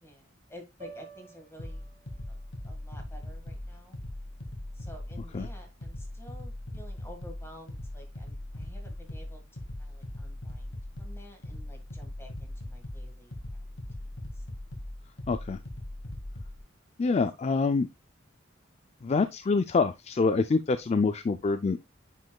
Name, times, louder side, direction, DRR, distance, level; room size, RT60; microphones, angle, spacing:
voice 1, 0.0-1.9 2.3-2.4 2.6-4.0 4.8-9.4 9.8-13.3 14.0-14.4, equal, 15° left, 1.7 m, -51 dB
sound 1, 0.8-5.1, right 3 dB, 35° right, 2.1 m, -54 dB
sound 2, 1.6-16.6, left 1 dB, 75° left, 2.0 m, -40 dB
voice 2, 15.3-15.6 17.0-17.9 19.0-21.8, left 4 dB, 35° left, 0.4 m, -26 dB
9.4 x 5.2 x 2.3 m
head